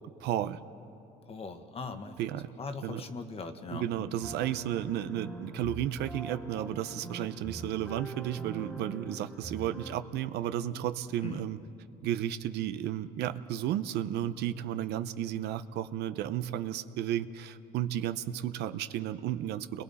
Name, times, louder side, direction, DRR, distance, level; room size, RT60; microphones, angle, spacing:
voice 1, 0.2-0.6 2.2-2.5 2.8-3.0 3.7-11.6 12.0-19.8, right 11 dB, 80° right, 12 dB, 0.7 m, -33 dB
voice 2, 1.3-2.2 2.6-4.2 11.2-11.4, left 4 dB, 35° left, 8 dB, 1.3 m, -40 dB
sound 1, 4.2-10.0, right 2 dB, ahead, 2.0 m, -43 dB
29.5 x 22.0 x 4.2 m, 2.8 s
cardioid pair, 110°, 17 cm